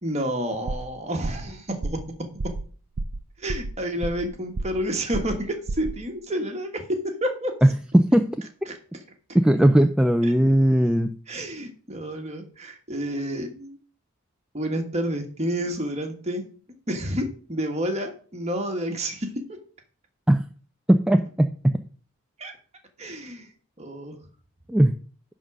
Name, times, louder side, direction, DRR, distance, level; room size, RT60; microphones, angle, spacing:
voice 1, 0.0-2.0 2.4-2.5 3.4-7.5 8.7-8.8 10.2-10.3 11.3-13.8 14.5-16.4 16.9-19.4 22.4-22.5 23.0-23.5 23.8-24.2, equal, 30° right, 4 dB, 1.4 m, -29 dB
sound 1, 0.7-1.0 1.2-1.5 1.8-2.1 2.4-2.7 3.0-3.2 3.5-4.3 4.6-4.9 5.1-5.4 5.7-6.0, right 2 dB, 65° right, 0.6 m, -30 dB
voice 2, 7.9-8.4 9.3-11.2 20.3-20.4 20.9-21.5 24.7-24.9, right 1 dB, 5° right, 6 dB, 0.3 m, -18 dB
10.5 x 3.8 x 6.1 m, 0.42 s
head